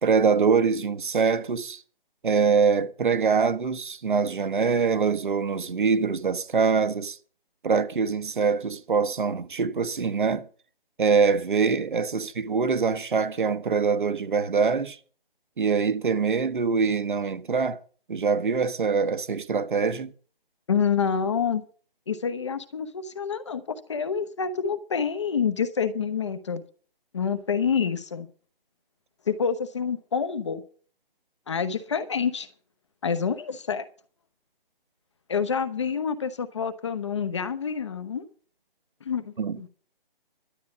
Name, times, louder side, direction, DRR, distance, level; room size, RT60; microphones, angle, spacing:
voice 1, 0.0-1.8 2.2-7.2 7.6-10.4 11.0-15.0 15.6-17.8 18.1-20.1 39.4-39.6, right 5 dB, 60° right, 1.3 m, -24 dB
voice 2, 20.7-21.6 22.1-26.6 27.1-28.3 29.3-30.6 31.5-32.5 33.0-33.9 35.3-38.2 39.0-39.7, left 6 dB, 30° left, 0.9 m, -27 dB
12.0 x 9.1 x 7.2 m
hypercardioid pair, 165°, 29 cm